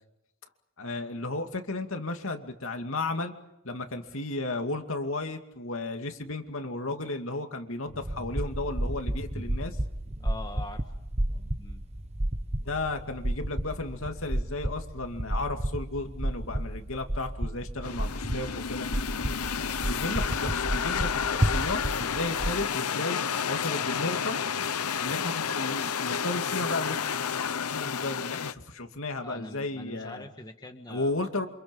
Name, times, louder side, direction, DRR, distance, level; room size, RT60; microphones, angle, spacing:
voice 1, 0.8-3.3 3.6-9.8 12.6-18.9 19.9-23.2 23.5-24.4 25.0-27.0 27.7-30.2 30.9-31.5, left 2 dB, 65° left, 5 dB, 2.5 m, -34 dB
sound 1, 7.9-22.6, right 1 dB, 30° right, 1.1 m, -32 dB
voice 2, 10.2-10.8 11.6-11.8 29.2-31.1, left 2 dB, 20° left, 5 dB, 1.5 m, -43 dB
sound 2, 17.8-28.5, left 7 dB, 85° left, 0.9 m, -31 dB
28.5 x 27.0 x 5.5 m, 0.86 s
head